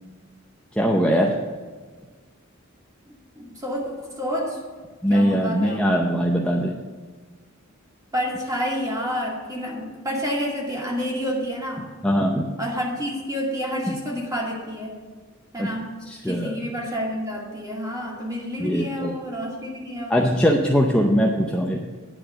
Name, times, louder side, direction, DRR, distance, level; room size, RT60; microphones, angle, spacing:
voice 1, 0.8-1.3 5.0-6.7 12.0-12.4 15.6-15.7 16.2-16.6 18.6-19.1 20.1-21.8, equal, 5° left, -1 dB, 0.6 m, -21 dB
voice 2, 3.1-4.6 5.1-5.9 8.1-11.9 12.6-15.0 15.5-20.2, equal, 15° right, -3 dB, 2.1 m, -29 dB
10.0 x 4.7 x 7.6 m, 1.5 s
head